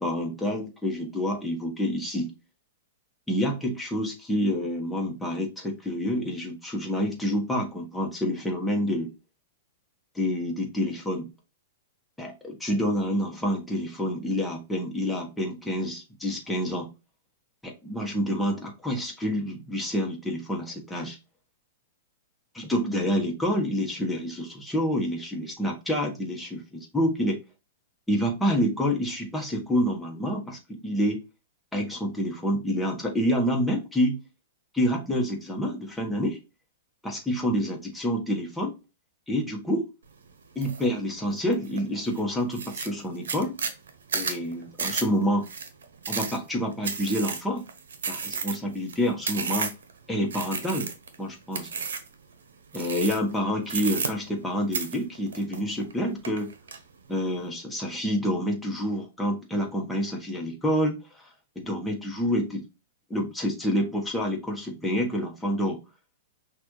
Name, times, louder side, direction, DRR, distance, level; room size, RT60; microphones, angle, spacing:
voice 1, 0.0-2.3 3.3-9.1 10.1-11.3 12.2-16.9 17.6-21.2 22.5-27.4 28.1-31.2 31.7-34.2 34.7-36.4 37.0-38.7 39.3-39.9 40.5-43.6 44.1-45.5 46.1-47.6 48.1-49.7 50.1-50.9 51.2-51.7 52.7-56.5 57.1-61.3 61.5-62.6 63.1-65.8, equal, 5° left, 1.3 m, -28 dB
sound 1, 40.6-40.9 41.3-41.8 42.2-42.3 42.5-49.9 50.3-51.2 51.5-52.1 52.7-53.4 53.7-54.5 54.7-55.9 56.2-56.8, right 5 dB, 80° right, 0.9 m, -32 dB
5.9 x 2.6 x 3.1 m
hypercardioid pair, 130°, 0 cm